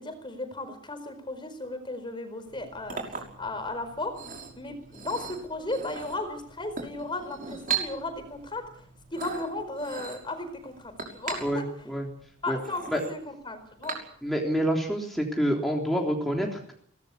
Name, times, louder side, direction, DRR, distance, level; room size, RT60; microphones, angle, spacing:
voice 1, 0.0-4.2 4.6-8.7 9.1-11.7 12.4-14.0, left 2 dB, 25° left, 9 dB, 4.5 m, -35 dB
Chink clink, 2.5-14.5, right 6 dB, 40° right, 6.0 m, -39 dB
voice 2, 11.4-12.1 12.5-12.6 12.9-13.0 14.2-16.7, equal, ahead, -1 dB, 3.5 m, -27 dB
23.5 x 19.0 x 8.4 m, 0.64 s
head